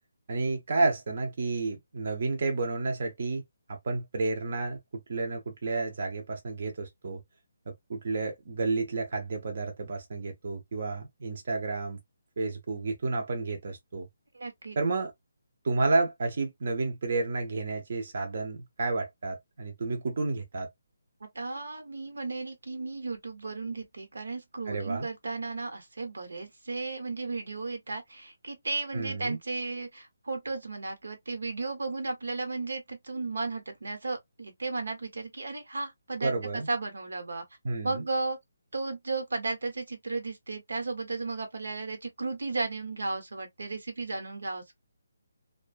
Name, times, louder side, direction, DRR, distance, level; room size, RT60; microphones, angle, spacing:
voice 1, 0.3-3.4 3.7-4.8 5.1-7.2 7.9-12.0 12.4-14.1 14.8-15.1 15.6-20.7 24.7-25.1 28.9-29.4 36.2-36.7 37.6-38.0, right 3 dB, 45° right, 0.6 m, -31 dB
voice 2, 14.3-14.8 21.2-37.4 37.8-38.4 38.7-44.7, right 3 dB, 85° right, 1.0 m, -34 dB
2.5 x 2.2 x 2.3 m
hypercardioid pair, 175°, 0 cm